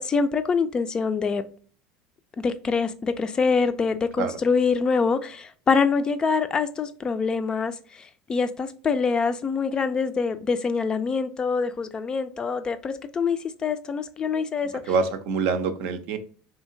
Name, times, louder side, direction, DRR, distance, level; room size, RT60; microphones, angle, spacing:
voice 1, 0.0-1.4 2.4-7.7 8.3-14.7, left 5 dB, 30° left, 0.3 m, -25 dB
voice 2, 14.9-16.2, right 5 dB, 65° right, 0.5 m, -25 dB
2.7 x 2.7 x 2.5 m
hypercardioid pair, 85°, 3 cm